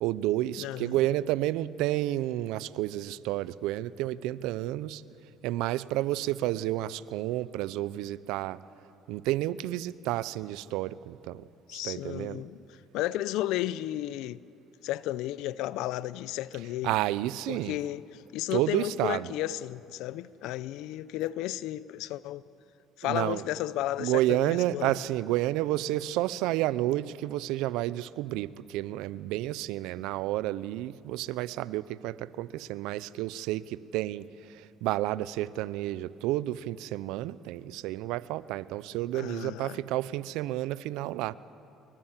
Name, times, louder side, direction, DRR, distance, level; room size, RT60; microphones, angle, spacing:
voice 1, 0.0-5.0 5.4-8.6 9.1-11.4 11.7-12.4 16.6-17.8 18.5-19.3 23.0-23.6 24.0-34.3 34.5-41.3, right 15 dB, 80° right, 0.6 m, -30 dB
voice 2, 0.6-1.0 11.7-14.4 14.8-16.9 17.5-22.4 23.0-25.0 39.1-39.8, left 14 dB, 80° left, 0.6 m, -33 dB
24.5 x 22.5 x 7.4 m
supercardioid pair, 80°, 0 cm